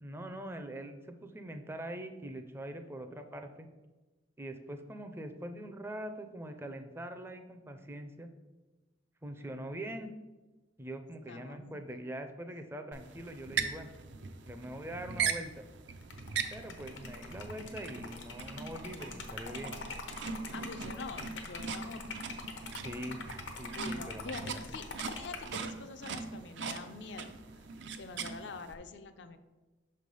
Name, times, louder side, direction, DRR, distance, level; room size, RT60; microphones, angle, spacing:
voice 1, 0.0-3.7 4.4-8.3 9.2-10.1 10.8-13.9 14.5-15.7 16.5-19.8 22.7-23.2 23.6-24.8, right 1 dB, 15° right, 7 dB, 0.4 m, -43 dB
voice 2, 11.3-11.7 20.5-22.2 23.7-27.6 27.9-29.4, left 4 dB, 65° left, 9 dB, 0.4 m, -46 dB
sound 1, 12.9-28.7, right 6 dB, 70° right, 0.5 m, -40 dB
Liquid, 16.0-25.6, left 4 dB, 90° left, 0.8 m, -44 dB
6.0 x 3.3 x 5.3 m, 1.2 s
head